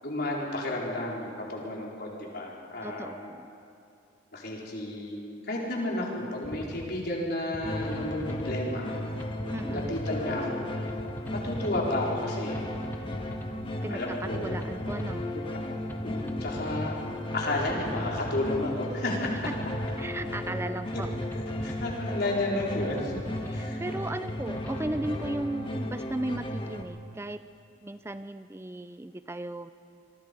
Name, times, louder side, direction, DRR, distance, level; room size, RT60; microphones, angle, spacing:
voice 1, 0.0-3.3 4.3-5.2 5.4-9.0 9.7-10.6 11.3-12.7 13.9-14.6 15.3-15.4 16.0-16.9 17.3-19.5 20.9-21.0 21.3-23.2 23.5-23.8, left 1 dB, 55° left, -3 dB, 4.7 m, -32 dB
voice 2, 2.8-3.5 9.5-9.9 13.8-15.2 20.0-21.1 23.4-27.4 27.8-29.7, right 1 dB, 15° right, 11 dB, 0.4 m, -36 dB
sound 1, 6.4-6.9 7.5-8.6 9.2-10.2 10.9-11.9 12.5-13.6 14.2-15.3 15.9-16.9 17.6-18.6 19.2-20.3 20.9-22.0 22.6-23.6 24.3-25.3, equal, 10° left, 1.2 m, -41 dB
sound 2, 7.6-26.8, left 1 dB, 25° left, 1.6 m, -35 dB
27.5 x 22.5 x 5.4 m, 2.5 s
head